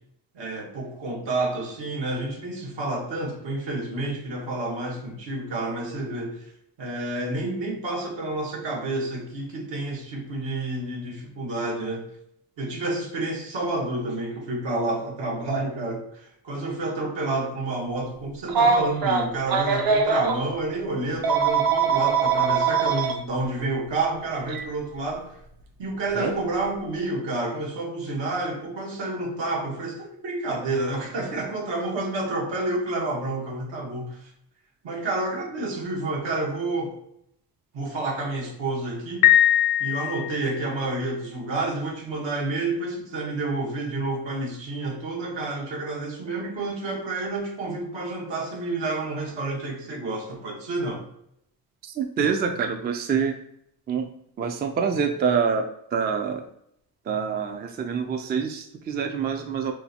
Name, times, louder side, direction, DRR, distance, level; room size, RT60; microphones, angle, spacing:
voice 1, 0.3-6.4 6.8-12.1 12.6-25.4 25.8-34.3 34.8-36.9 37.7-39.4 39.8-51.0, right 2 dB, 75° right, -1 dB, 1.3 m, -29 dB
Telephone, 18.5-20.4 21.2-23.1 24.5-24.6 26.1-26.3, right 5 dB, 55° right, 0.7 m, -22 dB
Piano, 39.2-40.7, left 12 dB, 80° left, 0.6 m, -20 dB
voice 2, 51.9-53.4 53.9-54.1 54.4-56.4 57.1-59.7, right 6 dB, 25° right, 5 dB, 0.3 m, -26 dB
4.3 x 2.2 x 2.8 m, 0.73 s
cardioid pair, 95°, 44 cm